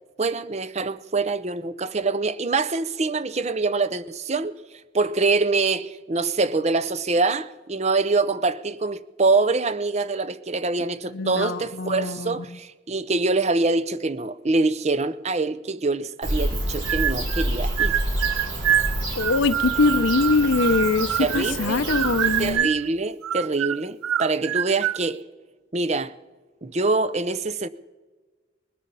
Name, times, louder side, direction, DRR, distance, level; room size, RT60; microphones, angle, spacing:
voice 1, 0.2-4.6 4.9-17.9 21.2-21.8 22.4-25.2 25.7-26.1 26.6-27.7, right 3 dB, 30° right, 0.6 m, -24 dB
voice 2, 11.1-12.4 18.7-18.9 19.2-22.7, left 3 dB, 65° left, 0.6 m, -23 dB
Bird / Cricket, 16.2-22.5, right 1 dB, 65° right, 4.7 m, -28 dB
sound 1, 16.9-17.5 17.8-21.6 21.9-22.9 23.2-25.0, right 10 dB, 85° right, 0.4 m, -26 dB
21.0 x 12.5 x 5.5 m
head